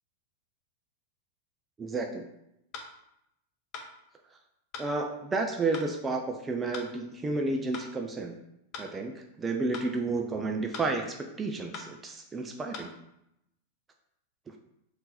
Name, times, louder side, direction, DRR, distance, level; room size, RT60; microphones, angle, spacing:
voice 1, 1.8-2.3 4.8-8.4 8.8-12.9 14.5-14.6, right 3 dB, 15° right, 3 dB, 0.4 m, -31 dB
sound 1, 2.7-2.9 3.7-3.9 4.7-4.9 5.7-5.9 6.7-6.9 7.7-7.9 8.7-8.9 9.7-9.9 10.7-10.9 11.7-11.9 12.7-12.9, left 4 dB, 35° left, 0.6 m, -41 dB
3.6 x 2.5 x 4.1 m, 0.82 s
figure-of-eight pair, 90°, 0 cm